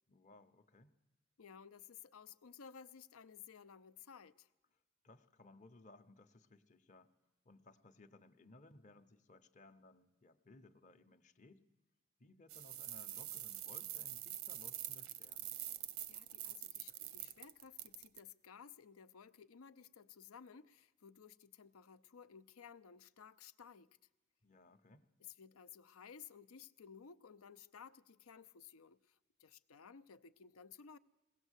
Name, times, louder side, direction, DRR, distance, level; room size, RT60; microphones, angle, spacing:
voice 1, 0.1-0.9 5.0-7.1 7.4-11.6 12.2-15.5 24.4-25.1, left 2 dB, 35° left, 0.8 m, -62 dB
voice 2, 1.4-4.5 16.1-23.9 25.2-31.0, left 7 dB, 80° left, 0.7 m, -57 dB
sound 1, 12.5-18.2, right 12 dB, 85° right, 0.9 m, -45 dB
21.5 x 17.0 x 8.2 m
head